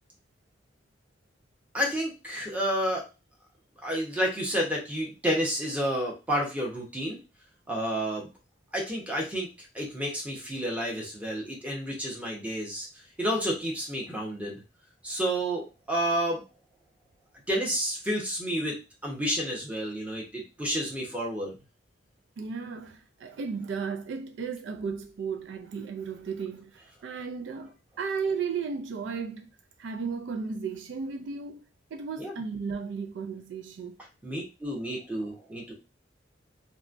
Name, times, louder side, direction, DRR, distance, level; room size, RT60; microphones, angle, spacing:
voice 1, 1.7-3.0 3.8-7.2 7.7-8.3 8.7-9.5 9.7-12.9 13.2-14.6 15.0-16.4 17.5-18.7 19.0-21.6 32.2-32.4 34.2-35.7, equal, 10° right, 0.9 m, -30 dB
voice 2, 22.4-29.5 29.8-31.6 31.9-34.0, right 5 dB, 70° right, 0.4 m, -34 dB
3.0 x 2.2 x 2.5 m
head